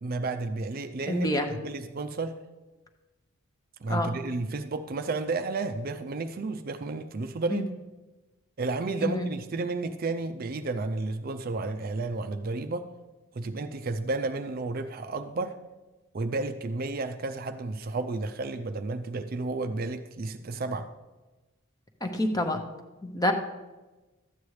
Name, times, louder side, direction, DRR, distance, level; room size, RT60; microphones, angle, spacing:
voice 1, 0.0-2.4 3.8-7.7 8.6-12.9 13.3-15.6 16.1-20.9, right 3 dB, 40° right, 9 dB, 0.4 m, -32 dB
voice 2, 1.1-1.5 3.9-4.1 7.5-7.6 9.0-9.3 22.0-22.6 23.0-23.3, left 1 dB, 15° left, 5 dB, 0.7 m, -27 dB
12.5 x 8.5 x 3.2 m, 1.2 s
head